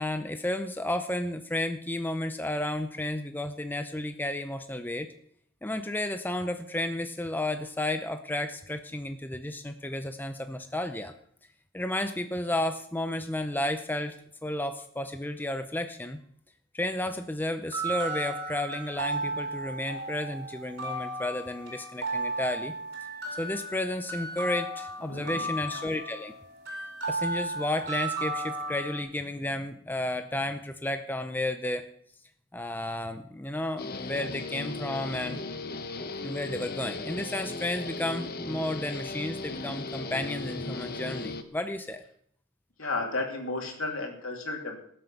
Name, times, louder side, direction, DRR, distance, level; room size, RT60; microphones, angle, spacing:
voice 1, 0.0-5.1 5.6-11.1 11.7-14.2 14.4-16.2 16.7-22.7 23.4-26.3 27.1-31.8 32.5-35.4 36.2-42.0, left 1 dB, 10° left, 8 dB, 0.6 m, -32 dB
sound 1, 17.7-29.0, right 2 dB, 50° right, 4.5 m, -35 dB
voice 2, 25.0-25.5 42.8-44.8, left 3 dB, 70° left, 2 dB, 3.0 m, -33 dB
Guitar, 33.8-41.4, left 3 dB, 45° left, 1.0 m, -37 dB
18.5 x 7.9 x 5.9 m, 0.65 s
head